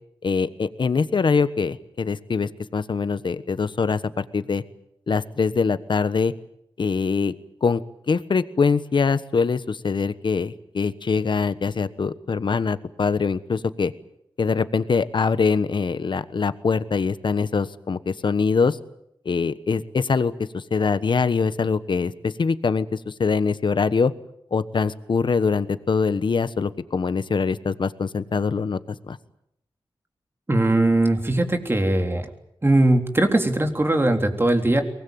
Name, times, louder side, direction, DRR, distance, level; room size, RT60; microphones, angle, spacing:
voice 1, 0.2-4.6 5.1-6.3 6.8-7.3 7.6-7.8 8.1-13.9 14.4-18.8 19.2-24.1 24.5-28.8 29.1-29.2, left 5 dB, 65° left, 14 dB, 1.2 m, -23 dB
voice 2, 30.5-32.3 32.6-34.8, right 1 dB, 25° right, 4 dB, 3.6 m, -20 dB
23.5 x 20.0 x 9.3 m, 0.78 s
wide cardioid pair, 70°, 9 cm